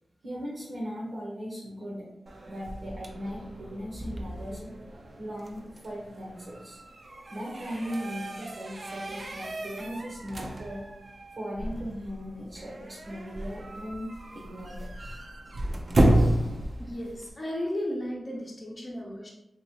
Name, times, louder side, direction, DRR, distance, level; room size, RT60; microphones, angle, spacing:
voice 1, 0.2-2.1 2.5-4.8 5.2-6.8 7.3-10.9 11.3-14.9, equal, 70° right, -4 dB, 0.9 m, -38 dB
sound 1, 2.3-17.3, right 1 dB, 55° right, 0.5 m, -32 dB
voice 2, 16.8-19.3, left 1 dB, 35° left, -3 dB, 0.7 m, -34 dB
3.0 x 2.9 x 2.9 m, 0.88 s
cardioid pair, 60°, 0 cm